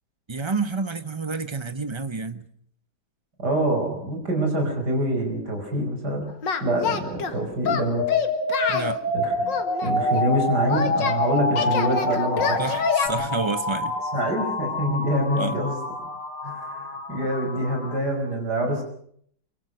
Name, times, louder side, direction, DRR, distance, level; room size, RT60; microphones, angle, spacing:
voice 1, 0.3-2.4 8.7-9.0 12.6-14.0 15.4-15.6, right 4 dB, 20° right, 0.8 m, -29 dB
voice 2, 3.4-6.3 6.6-8.0 9.1-9.3 9.8-12.7 14.1-15.8 16.4-18.8, right 1 dB, 65° right, 5.9 m, -25 dB
Singing, 6.4-7.3 7.6-8.9 9.5-11.2 11.6-13.1, left 6 dB, 85° left, 2.5 m, -26 dB
sound 1, 8.0-18.0, left 2 dB, 50° left, 2.9 m, -27 dB
24.5 x 23.0 x 6.3 m
omnidirectional pair, 1.9 m